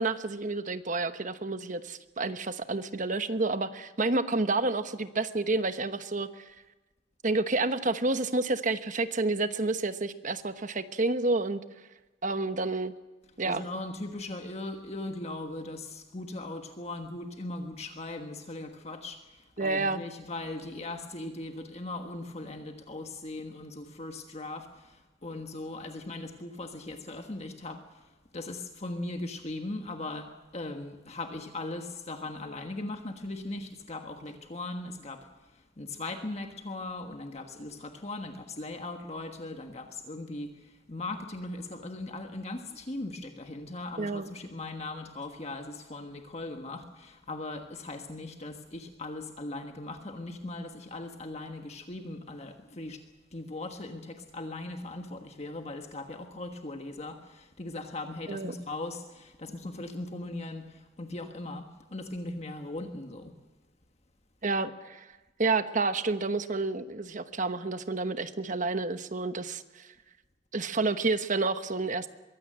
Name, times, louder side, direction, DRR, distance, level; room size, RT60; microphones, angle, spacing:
voice 1, 0.0-6.5 7.2-11.6 12.2-12.9 13.4-13.6 19.6-20.0 44.0-44.3 58.3-58.5 64.4-65.1 65.4-69.9 70.5-72.1, right 3 dB, 40° right, 10 dB, 1.0 m, -29 dB
voice 2, 13.4-53.0 53.3-63.4, left 2 dB, 35° left, 5 dB, 1.4 m, -39 dB
23.0 x 16.0 x 7.6 m, 1.2 s
head